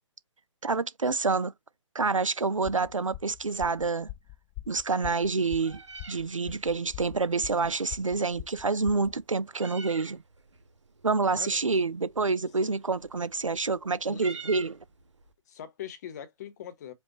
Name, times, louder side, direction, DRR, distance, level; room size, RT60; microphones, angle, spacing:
voice 1, 0.6-1.5 1.9-4.1 4.7-5.8 6.1-10.2 11.0-14.8, right 4 dB, 85° right, 0.4 m, -27 dB
sound 1, 2.6-9.2, left 17 dB, 15° left, 0.5 m, -43 dB
Meow, 5.2-15.3, right 4 dB, 70° right, 1.0 m, -50 dB
voice 2, 11.3-11.6 14.1-14.4 15.5-16.9, left 9 dB, 35° left, 0.9 m, -42 dB
5.0 x 2.3 x 2.8 m
figure-of-eight pair, 130°, 16 cm